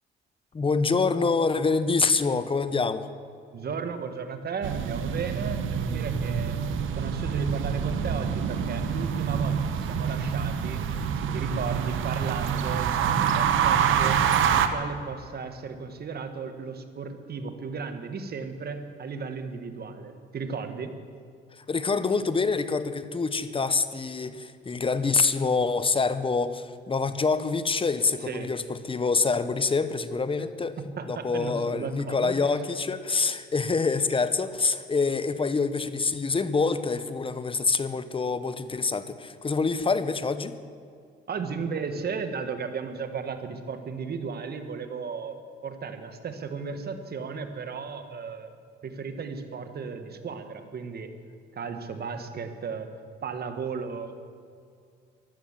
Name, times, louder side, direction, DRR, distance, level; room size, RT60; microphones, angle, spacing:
voice 1, 0.5-3.1 21.6-30.8 31.1-40.6, left 4 dB, 25° left, 12 dB, 0.9 m, -26 dB
voice 2, 3.5-6.6 7.0-10.8 11.2-14.2 14.5-20.9 28.2-28.5 30.8-32.3 41.3-45.4 45.6-48.5 48.8-51.1 51.5-52.9 53.2-54.2, right 5 dB, 50° right, 8 dB, 1.6 m, -35 dB
sound 1, 4.6-14.7, right 8 dB, 80° right, 1.1 m, -26 dB
15.5 x 11.5 x 7.4 m, 2.3 s
cardioid pair, 90°, 20 cm